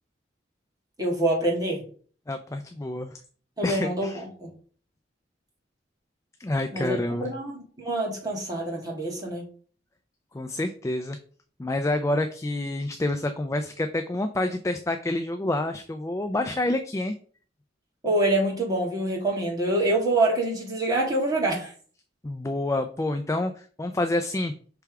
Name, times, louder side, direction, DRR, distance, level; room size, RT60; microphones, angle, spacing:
voice 1, 1.0-1.8 3.6-4.5 6.7-9.5 18.0-21.7, right 1 dB, 20° right, -2 dB, 1.9 m, -26 dB
voice 2, 2.3-3.1 3.6-4.2 6.4-7.3 10.3-11.2 11.6-17.1 22.2-24.5, left 1 dB, 15° left, 7 dB, 0.4 m, -28 dB
6.0 x 3.4 x 4.6 m, 0.43 s
head